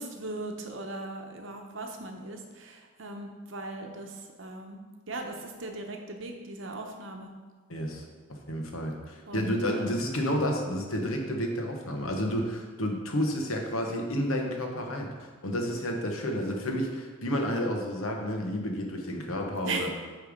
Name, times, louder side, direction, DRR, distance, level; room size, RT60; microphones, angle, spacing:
voice 1, 0.0-4.1 4.4-4.8 5.1-7.3 9.3-9.9 19.6-19.9, right 2 dB, 65° right, 3 dB, 0.8 m, -38 dB
voice 2, 7.7-8.0 8.3-19.9, equal, 80° left, 2 dB, 1.1 m, -30 dB
8.3 x 3.3 x 5.1 m, 1.4 s
head